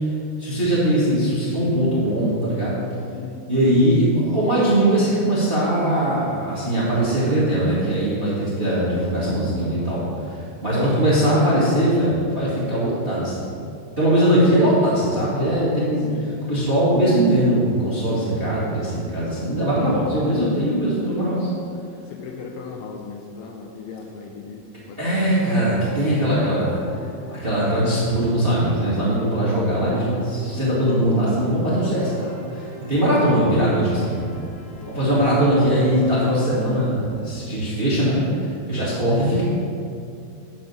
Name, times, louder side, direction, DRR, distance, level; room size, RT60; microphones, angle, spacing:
voice 1, 0.4-2.8 3.5-13.5 14.0-16.1 16.4-21.5 25.0-26.8 27.3-34.3 34.9-39.4, right 1 dB, 20° right, -9 dB, 1.6 m, -20 dB
voice 2, 3.1-3.7 16.0-16.4 22.1-24.6 24.9-25.3 34.7-35.8 38.7-39.2, left 5 dB, 80° left, 2 dB, 2.1 m, -38 dB
sound 1, 25.8-36.9, equal, 35° left, 1.6 m, -41 dB
10.5 x 4.3 x 6.9 m, 2.5 s
omnidirectional pair, 4.2 m